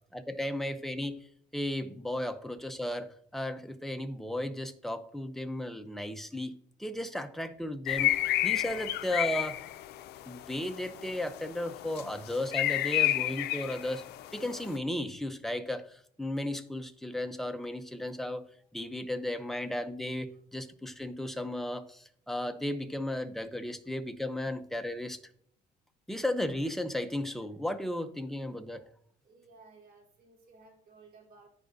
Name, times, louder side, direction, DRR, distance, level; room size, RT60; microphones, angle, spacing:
voice 1, 0.1-1.3 1.5-6.5 6.8-8.2 8.4-9.6 10.2-14.0 14.3-25.2 26.1-28.8, left 1 dB, ahead, 7 dB, 0.7 m, -35 dB
sound 1, 7.9-14.8, left 14 dB, 75° left, 0.5 m, -31 dB
voice 2, 29.2-31.5, right 3 dB, 60° right, 0 dB, 2.7 m, -57 dB
13.0 x 4.9 x 2.7 m, 0.63 s
cardioid pair, 110°, 17 cm